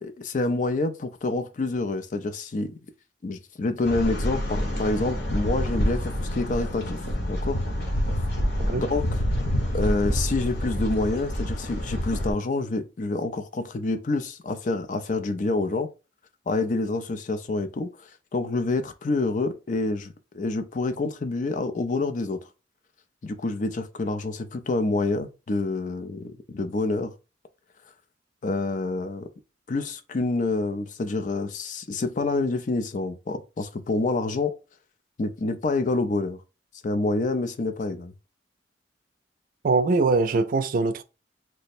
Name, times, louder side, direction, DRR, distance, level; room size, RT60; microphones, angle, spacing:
voice 1, 0.0-2.7 3.2-7.0 7.3-7.6 8.2-8.3 8.8-9.1 9.7-15.9 16.5-17.9 18.3-22.4 23.2-27.1 28.4-29.3 29.7-34.5 35.2-36.4 36.8-38.1, left 2 dB, 45° left, 0.4 m, -27 dB
sound 1, 3.8-12.3, equal, 60° left, 1.1 m, -27 dB
voice 2, 39.6-41.0, right 3 dB, 50° right, 0.4 m, -22 dB
3.2 x 2.1 x 4.2 m
head